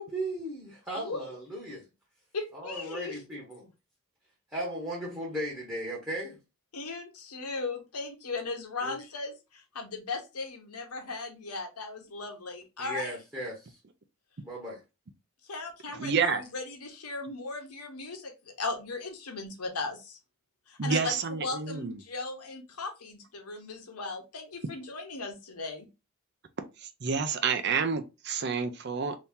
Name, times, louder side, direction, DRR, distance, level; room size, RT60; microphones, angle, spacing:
voice 1, 0.0-1.9 2.5-3.7 4.5-6.4 8.8-9.0 12.8-13.8 14.4-14.8, right 1 dB, 10° right, 0.9 m, -36 dB
voice 2, 2.3-3.2 6.7-9.3 9.7-13.1 15.5-18.3 18.6-20.2 20.7-25.9, left 3 dB, 90° left, 1.0 m, -37 dB
voice 3, 15.9-16.4 20.8-22.0 26.8-29.2, right 5 dB, 50° right, 0.5 m, -29 dB
2.8 x 2.8 x 3.5 m
head